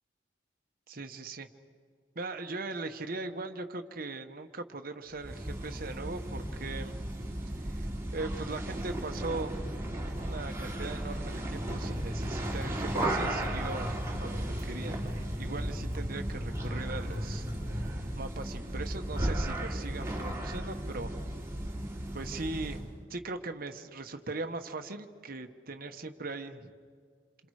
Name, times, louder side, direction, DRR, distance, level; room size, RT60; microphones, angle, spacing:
voice 1, 0.9-1.5 2.1-7.0 7.6-7.9 8.1-9.6 10.1-17.5 17.7-21.2 22.1-26.7, right 3 dB, 55° right, 6 dB, 1.2 m, -40 dB
sound 1, 5.2-22.9, right 1 dB, 15° right, 3.0 m, -35 dB
sound 2, 11.7-18.0, left 1 dB, 30° left, 5.3 m, -40 dB
28.0 x 27.0 x 4.9 m, 2.1 s
head